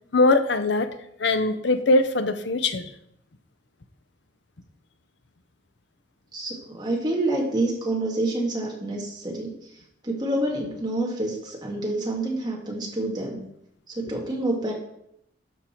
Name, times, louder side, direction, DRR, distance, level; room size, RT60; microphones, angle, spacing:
voice 1, 0.1-0.9 1.2-2.8, left 2 dB, 65° left, 10 dB, 0.7 m, -21 dB
voice 2, 6.3-9.6 10.0-13.4 13.9-14.7, right 1 dB, 20° right, -2 dB, 1.9 m, -27 dB
12.0 x 5.3 x 4.5 m, 0.77 s
head